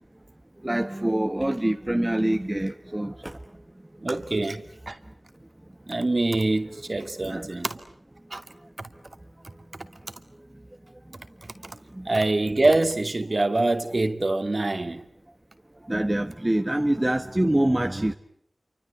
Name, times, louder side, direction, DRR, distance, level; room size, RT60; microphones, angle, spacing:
voice 1, 0.6-3.4 4.0-4.2 7.0-7.5 11.9-12.1 15.8-18.1, right 1 dB, 20° right, 6 dB, 1.5 m, -25 dB
voice 2, 4.0-5.0 5.9-7.8 8.3-8.4 12.0-15.1, right 2 dB, 50° right, 8 dB, 2.6 m, -25 dB
28.5 x 25.0 x 8.3 m, 0.64 s
wide cardioid pair, 50°, 0 cm